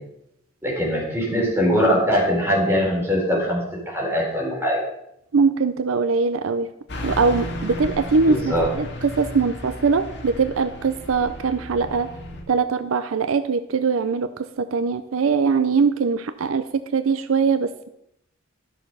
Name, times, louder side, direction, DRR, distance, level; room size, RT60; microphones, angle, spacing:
voice 1, 0.6-3.6 3.9-4.8 8.2-8.7, equal, 10° right, -4 dB, 4.5 m, -21 dB
voice 2, 5.3-6.7 7.0-12.1 12.5-17.9, right 5 dB, 75° right, 11 dB, 0.5 m, -22 dB
Car passing by / Truck, 6.9-12.4, left 1 dB, 60° left, 2.0 m, -34 dB
13.0 x 6.8 x 5.5 m, 0.81 s
head